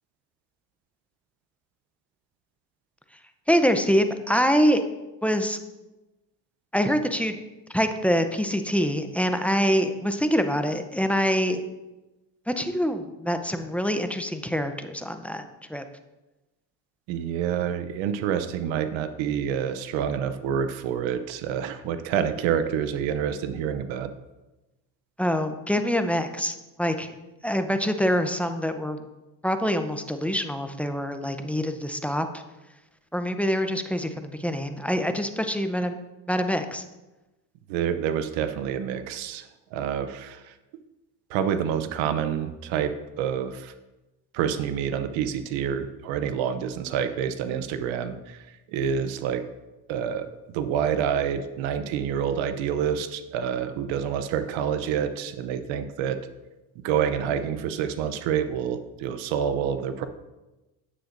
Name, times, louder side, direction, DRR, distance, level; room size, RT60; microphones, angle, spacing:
voice 1, 3.5-4.8 5.2-5.6 6.7-7.4 7.7-11.6 12.5-15.4 15.7-15.8 25.2-27.1 27.4-29.0 29.4-32.4 33.1-36.0 36.3-36.8, equal, 5° left, 7 dB, 0.5 m, -25 dB
voice 2, 17.1-24.1 37.7-40.5 41.3-43.7 44.3-48.4 48.7-49.4 49.9-56.2 56.8-60.1, right 8 dB, 80° right, 11 dB, 0.7 m, -28 dB
9.8 x 7.6 x 2.6 m, 1.0 s
supercardioid pair, 85°, 46 cm